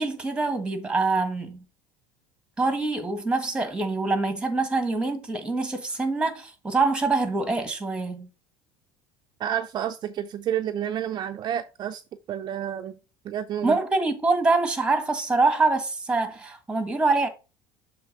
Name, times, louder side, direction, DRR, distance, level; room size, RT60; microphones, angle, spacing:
voice 1, 0.0-1.6 2.6-8.3 13.6-17.3, right 3 dB, 10° right, 1.6 m, -25 dB
voice 2, 9.4-12.0 12.3-13.0 13.2-13.8, right 10 dB, 40° right, 0.5 m, -29 dB
6.9 x 3.5 x 4.8 m
supercardioid pair, 110°, 11 cm